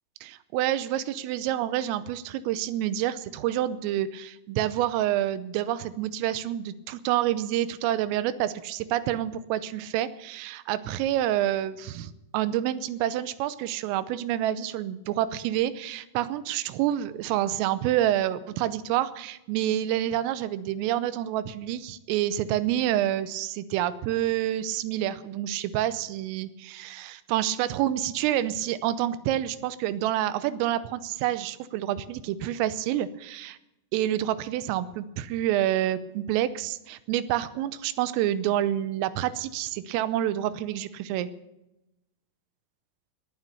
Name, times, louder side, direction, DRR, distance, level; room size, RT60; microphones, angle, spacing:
voice 1, 0.2-33.6 33.9-41.3, right 12 dB, 85° right, 15 dB, 3.4 m, -28 dB
19.5 x 9.2 x 6.8 m, 0.91 s
omnidirectional pair, 5.8 m